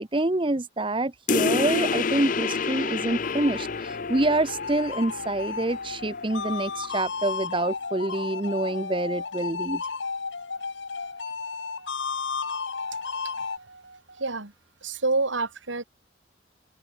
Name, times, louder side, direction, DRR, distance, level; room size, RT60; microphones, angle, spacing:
voice 1, 0.0-9.8, right 2 dB, 25° right, 0.9 m, -27 dB
sound 1, 1.3-6.3, left 5 dB, 45° left, 0.5 m, -29 dB
sound 2, 1.8-13.6, left 5 dB, 70° left, 1.3 m, -34 dB
sound 3, 10.5-14.5, right 3 dB, 60° right, 5.8 m, -51 dB
voice 2, 14.2-14.5 14.8-15.8, right 3 dB, 80° right, 2.7 m, -27 dB
open air
head